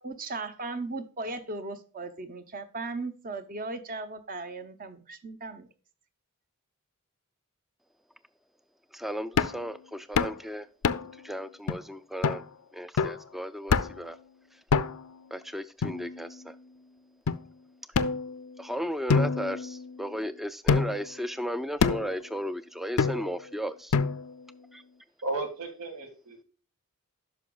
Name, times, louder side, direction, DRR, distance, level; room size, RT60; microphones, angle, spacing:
voice 1, 0.0-5.7, right 3 dB, 40° right, 0.8 m, -37 dB
voice 2, 8.9-10.7 11.2-12.4 12.7-14.2 15.3-16.6 18.6-24.0 24.7-24.8, equal, ahead, 0.3 m, -35 dB
sound 1, 9.4-9.6 10.2-10.4 10.8-11.2 11.7-11.8 12.2-12.4 13.0-13.2 13.7-14.1 14.7-15.2 15.8-16.5 17.3-17.4 17.9-18.6 19.1-20.1 20.7-21.1 21.8-22.2 23.0-23.4 23.9-24.4, left 5 dB, 65° left, 0.4 m, -27 dB
voice 3, 25.2-26.4, right 2 dB, 85° right, 2.0 m, -34 dB
9.6 x 6.0 x 2.3 m
head